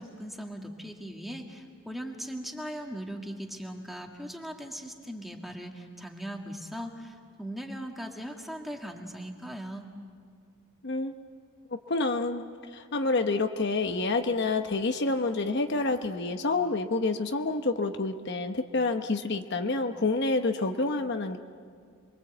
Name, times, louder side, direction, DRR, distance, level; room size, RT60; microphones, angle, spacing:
voice 1, 0.0-9.9, equal, ahead, 2 dB, 1.9 m, -39 dB
voice 2, 11.9-12.4 12.7-21.4, left 3 dB, 55° left, 6 dB, 0.9 m, -28 dB
27.5 x 22.5 x 8.0 m, 2.1 s
head